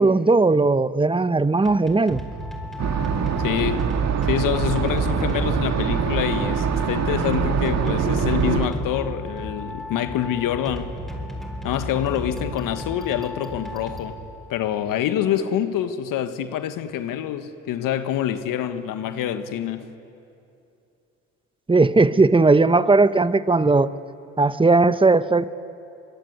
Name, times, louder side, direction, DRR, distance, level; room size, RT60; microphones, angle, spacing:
voice 1, 0.0-2.2 21.7-23.9 24.4-25.5, right 3 dB, 15° right, 1.0 m, -17 dB
sound 1, 1.7-14.7, left 1 dB, ahead, 7.5 m, -34 dB
sound 2, 2.8-8.7, right 7 dB, 45° right, 2.1 m, -23 dB
voice 2, 3.4-3.9 4.2-10.9 11.6-14.2 14.5-19.9, left 10 dB, 65° left, 1.6 m, -26 dB
25.5 x 23.5 x 9.7 m
hypercardioid pair, 65°, 36 cm